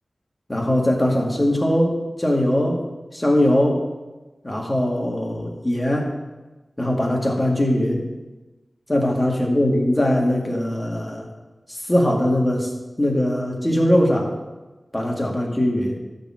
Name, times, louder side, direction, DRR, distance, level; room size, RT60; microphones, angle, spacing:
voice 1, 0.5-2.9 3.1-3.8 4.4-6.1 6.8-8.0 8.9-11.2 11.7-12.7 13.0-14.3 14.9-16.0, left 1 dB, 25° left, 0 dB, 2.1 m, -21 dB
12.0 x 4.1 x 7.5 m, 1.2 s
cardioid pair, 45°, 0 cm